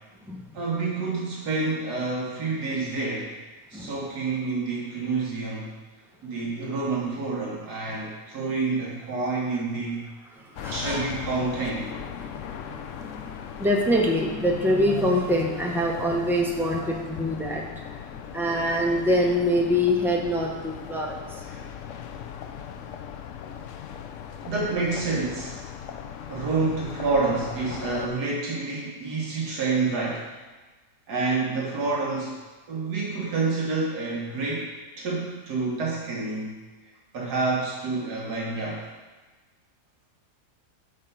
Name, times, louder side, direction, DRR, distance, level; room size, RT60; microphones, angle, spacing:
voice 1, 0.5-3.4 3.7-5.7 6.2-10.1 10.7-11.9 21.5-21.7 24.4-25.6 26.3-30.3 31.1-32.3 32.7-36.5 37.1-38.9, right 3 dB, 75° right, -4 dB, 1.8 m, -28 dB
voice 2, 10.4-11.1 12.2-21.4, equal, 5° right, -1 dB, 0.3 m, -25 dB
sound 1, 10.6-28.1, left 8 dB, 70° left, 0.7 m, -39 dB
7.4 x 4.5 x 5.5 m, 1.3 s
omnidirectional pair, 1.7 m